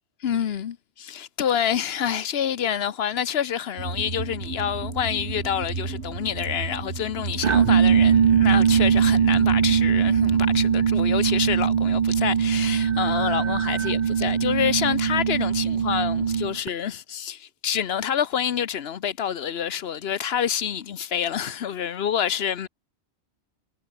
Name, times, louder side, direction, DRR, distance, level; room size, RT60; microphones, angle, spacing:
voice 1, 0.2-22.7, left 9 dB, 70° left, 1.0 m, -27 dB
sound 1, 3.8-10.6, right 4 dB, 80° right, 2.3 m, -34 dB
sound 2, 7.4-16.7, right 7 dB, 45° right, 0.7 m, -21 dB
omnidirectional pair, 1.1 m